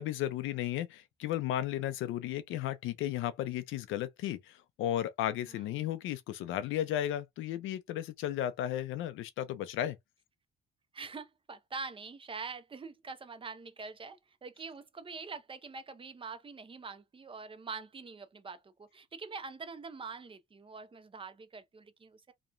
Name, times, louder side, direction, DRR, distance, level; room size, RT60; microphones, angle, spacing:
voice 1, 0.0-10.0, left 12 dB, 90° left, 0.5 m, -34 dB
voice 2, 5.5-5.9 10.9-22.3, right 4 dB, 25° right, 0.6 m, -44 dB
2.9 x 2.2 x 2.4 m
cardioid pair, 90°, 20 cm